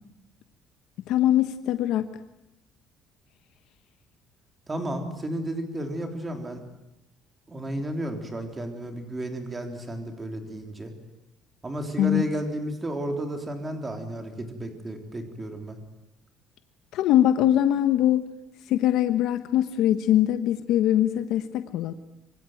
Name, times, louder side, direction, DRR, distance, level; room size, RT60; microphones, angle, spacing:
voice 1, 1.1-2.1 12.0-12.2 16.9-18.2 18.7-21.9, left 12 dB, 65° left, 10 dB, 1.2 m, -22 dB
voice 2, 4.7-6.6 7.5-10.9 11.6-15.8, right 1 dB, 15° right, 5 dB, 3.6 m, -32 dB
25.5 x 25.0 x 9.2 m, 0.88 s
cardioid pair, 170°, 0 cm